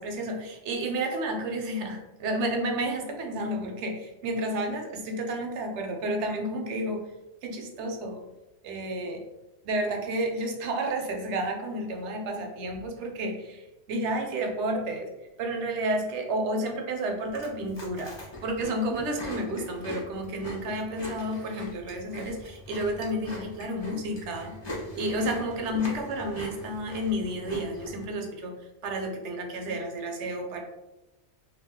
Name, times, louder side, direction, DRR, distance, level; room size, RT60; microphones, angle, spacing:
voice 1, 0.0-7.0 7.4-8.2 8.6-9.2 9.6-13.6 13.9-15.1 15.4-18.2 18.4-24.5 25.0-28.5 28.8-30.6, right 1 dB, 75° right, 3 dB, 0.9 m, -31 dB
Chewing mastication, 17.2-28.0, left 1 dB, 30° left, 0.6 m, -41 dB
2.4 x 2.2 x 3.5 m, 0.99 s
omnidirectional pair, 1.2 m